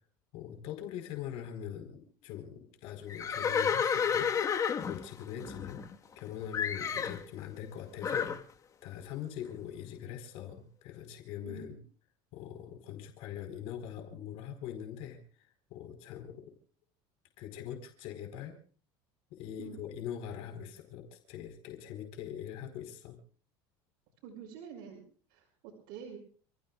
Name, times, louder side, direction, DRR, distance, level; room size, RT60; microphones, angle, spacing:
voice 1, 0.3-4.3 4.9-5.8 6.2-8.4 8.8-11.8 12.3-15.2 15.7-16.5 17.4-18.6 19.3-23.2, left 10 dB, 65° left, 5 dB, 4.3 m, -42 dB
Livestock farm animals working animals, 3.1-6.2 6.5-7.2 8.0-8.4, left 7 dB, 30° left, 1.4 m, -31 dB
voice 2, 11.4-11.7 19.6-19.8 24.2-25.0 25.3-26.2, right 7 dB, 65° right, -2 dB, 5.5 m, -47 dB
30.0 x 15.0 x 2.4 m, 0.43 s
supercardioid pair, 125°, 11 cm